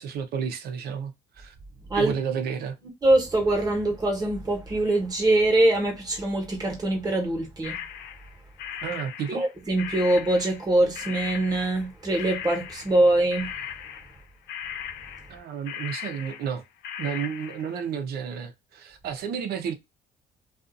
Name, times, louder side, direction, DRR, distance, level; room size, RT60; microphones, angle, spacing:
voice 1, 0.0-1.5 2.0-2.8 8.8-9.4 15.3-16.6 17.0-19.7, right 7 dB, 70° right, 0.7 m, -31 dB
voice 2, 3.0-7.8 9.3-13.5, right 1 dB, 20° right, 1.2 m, -23 dB
sound 1, 7.6-10.7 10.9-11.9 12.1-13.1 13.3-17.8, left 9 dB, 75° left, 0.5 m, -38 dB
2.5 x 2.5 x 2.5 m
cardioid pair, 110°, 17 cm